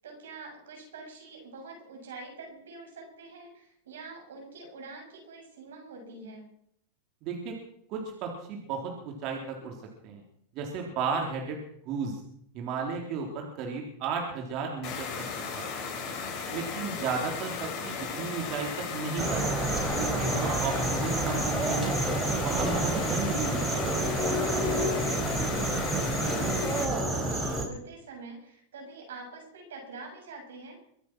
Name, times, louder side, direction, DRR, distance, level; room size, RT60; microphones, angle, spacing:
voice 1, 0.0-6.5 16.6-17.0 24.6-25.1 26.5-30.8, right 3 dB, 85° right, 2 dB, 6.9 m, -45 dB
voice 2, 7.2-7.6 7.9-9.7 10.0-10.2 10.6-11.6 11.9-12.2 12.5-15.1 15.4-15.8 16.5-19.4 20.0-22.0 22.4-23.6, right 5 dB, 50° right, 1 dB, 3.7 m, -34 dB
sound 1, 14.8-26.9, left 5 dB, 40° left, 6.6 m, -36 dB
sound 2, 19.2-27.7, right 1 dB, 15° right, 4.4 m, -28 dB
24.0 x 8.2 x 6.2 m, 0.70 s
hypercardioid pair, 115°, 0 cm